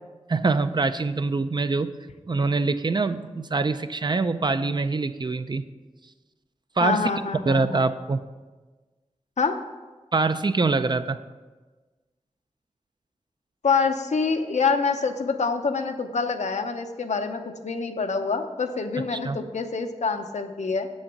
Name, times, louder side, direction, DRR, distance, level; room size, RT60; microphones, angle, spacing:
voice 1, 0.3-1.9 2.3-5.6 6.8-7.1 7.5-8.2 10.1-11.2 19.1-19.4, right 3 dB, 40° right, 11 dB, 0.4 m, -24 dB
voice 2, 6.8-7.8 9.4-9.6 13.6-20.9, left 4 dB, 75° left, 6 dB, 0.7 m, -26 dB
7.8 x 6.4 x 5.9 m, 1.3 s
wide cardioid pair, 65°, 12 cm